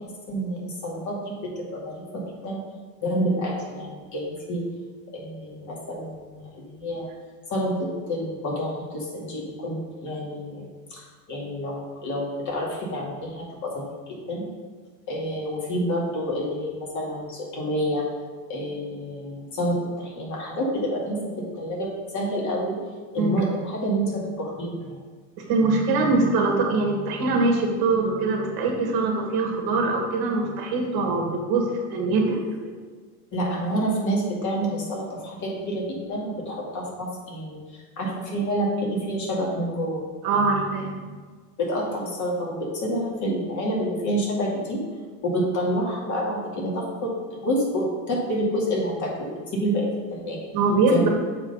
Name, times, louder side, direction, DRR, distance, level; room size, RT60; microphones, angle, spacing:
voice 1, 0.3-2.6 3.0-4.6 5.1-7.1 7.5-11.0 11.3-13.9 14.3-14.4 15.1-18.1 18.5-22.8 23.1-24.9 33.3-37.6 38.0-40.0 41.6-44.8 45.2-50.4 50.9-51.1, equal, 35° left, -3 dB, 2.3 m, -28 dB
voice 2, 25.5-32.7 40.2-41.1 50.5-51.1, right 3 dB, 45° right, 1 dB, 1.5 m, -23 dB
7.2 x 3.9 x 5.5 m, 1.5 s
supercardioid pair, 115°, 50 cm